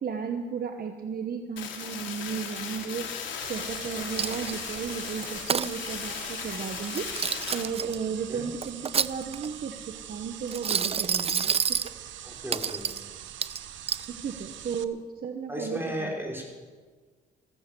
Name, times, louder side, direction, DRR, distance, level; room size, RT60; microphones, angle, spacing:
voice 1, 0.0-11.9 14.1-16.5, right 6 dB, 50° right, 6 dB, 1.1 m, -35 dB
sound 1, 1.6-7.6, left 7 dB, 70° left, 3.1 m, -37 dB
sound 2, 3.4-14.8, right 10 dB, 70° right, 0.9 m, -43 dB
Coin (dropping), 4.2-4.7 5.2-5.7 6.8-8.0 8.6-9.5 10.5-11.9 12.5-13.0 13.4-14.1, right 7 dB, 30° right, 0.4 m, -28 dB
voice 2, 12.2-12.8 15.5-16.5, equal, 10° right, -1 dB, 5.1 m, -34 dB
15.0 x 14.5 x 6.8 m, 1.5 s
cardioid pair, 90°, 20 cm